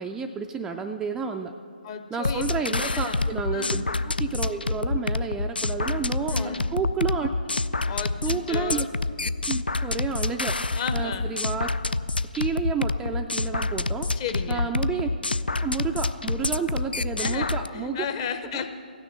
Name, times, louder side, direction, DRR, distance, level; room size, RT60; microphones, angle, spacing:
voice 1, 0.0-1.5 2.1-7.3 8.2-8.9 9.5-10.6 10.9-11.7 12.3-14.1 14.5-15.1 15.6-18.1, right 5 dB, 10° right, 3 dB, 0.3 m, -30 dB
voice 2, 1.8-2.4 2.7-3.2 3.5-3.8 6.3-6.7 7.9-8.9 10.7-11.3 14.2-14.7 17.2-18.7, left 6 dB, 35° left, 8 dB, 0.8 m, -33 dB
sound 1, 2.2-17.7, left 3 dB, 85° left, 0.4 m, -27 dB
16.0 x 6.4 x 7.5 m, 2.5 s
figure-of-eight pair, 135°, 5 cm